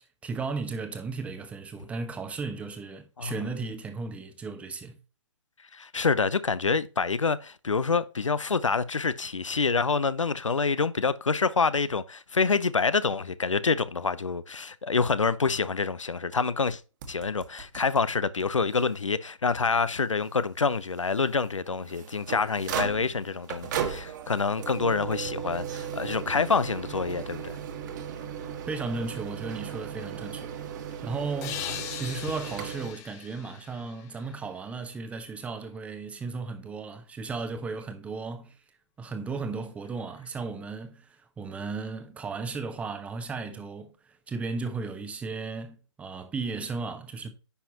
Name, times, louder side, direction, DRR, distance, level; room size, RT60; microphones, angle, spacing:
voice 1, 0.2-5.0 28.7-30.5 31.0-38.6 39.0-47.3, right 4 dB, 10° right, 0.9 m, -35 dB
voice 2, 5.7-16.8 17.1-27.6, left 4 dB, 80° left, 0.7 m, -27 dB
sound 1, 17.0-18.0 18.4-18.5 18.7-18.8 19.5-19.6 21.6-32.9, right 8 dB, 35° right, 1.7 m, -36 dB
sound 2, 31.4-34.9, left 12 dB, 20° left, 0.7 m, -40 dB
9.9 x 5.8 x 2.9 m
figure-of-eight pair, 135°, 16 cm